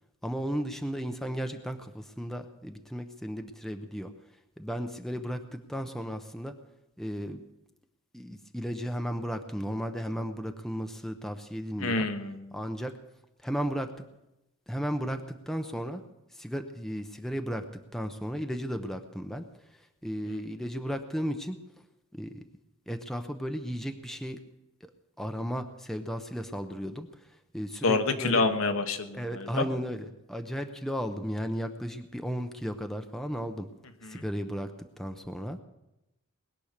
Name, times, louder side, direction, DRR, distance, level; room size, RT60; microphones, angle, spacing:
voice 1, 0.2-4.1 4.6-6.5 7.0-7.4 8.1-12.1 12.5-12.9 13.4-14.0 14.7-16.0 16.3-19.4 20.0-21.6 22.1-22.4 22.9-24.4 24.8-24.9 25.2-27.1 27.5-28.4 29.1-33.7 34.1-35.6, equal, ahead, 6 dB, 0.8 m, -34 dB
voice 2, 11.8-12.5 20.3-20.4 27.8-29.7 34.0-34.2, left 3 dB, 70° left, 7 dB, 1.3 m, -28 dB
20.5 x 10.0 x 6.7 m, 0.93 s
head